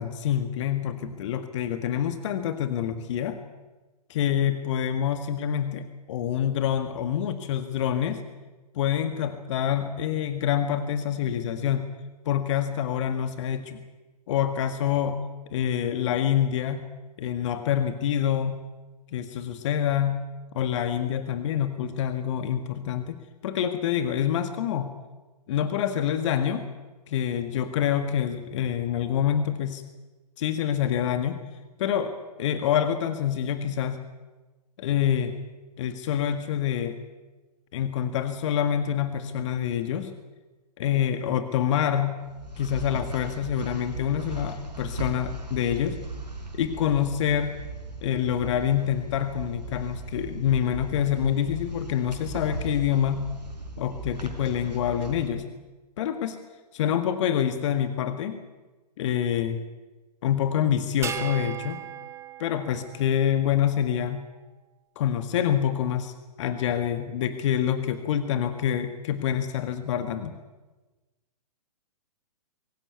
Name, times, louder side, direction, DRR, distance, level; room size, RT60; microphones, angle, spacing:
voice 1, 0.0-3.4 4.1-8.2 8.7-11.9 12.2-13.8 14.3-15.2 15.5-16.9 17.2-18.6 19.1-20.2 20.5-24.9 25.5-26.6 27.1-29.8 30.4-31.4 31.8-34.0 34.8-35.3 35.8-37.0 37.7-40.1 40.8-42.2 42.6-46.0 46.5-47.5 48.0-53.3 53.8-55.4 56.0-56.4 56.7-58.4 59.0-59.6 60.2-61.8 62.4-64.2 64.9-66.1 66.4-70.3, left 9 dB, 45° left, 9 dB, 1.8 m, -26 dB
Steps on Carpet Quick, 42.2-55.3, right 2 dB, 90° right, 4.6 m, -37 dB
sound 1, 61.0-63.6, right 9 dB, 15° right, 1.4 m, -36 dB
24.0 x 15.5 x 9.5 m, 1.2 s
figure-of-eight pair, 120°, 21 cm